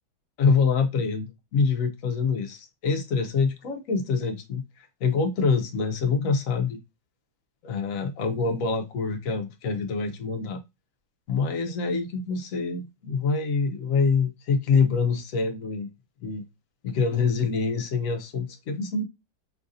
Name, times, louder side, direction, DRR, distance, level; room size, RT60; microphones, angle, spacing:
voice 1, 0.4-6.8 7.6-10.6 11.3-15.9 16.2-16.4 16.8-19.0, left 5 dB, 65° left, 0.8 m, -25 dB
5.6 x 2.5 x 2.6 m
omnidirectional pair, 1.9 m